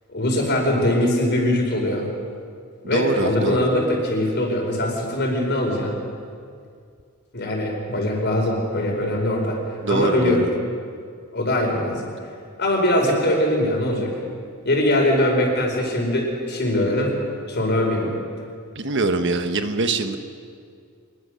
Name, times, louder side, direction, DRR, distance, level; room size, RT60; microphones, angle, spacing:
voice 1, 0.1-2.0 2.9-5.9 7.3-10.4 11.3-12.1 12.6-14.1 14.6-17.1 17.5-18.1, left 1 dB, 50° left, 1 dB, 5.0 m, -22 dB
voice 2, 2.9-3.7 9.8-10.5 18.7-20.2, right 3 dB, 55° right, 7 dB, 1.3 m, -23 dB
24.5 x 21.0 x 6.5 m, 2.2 s
head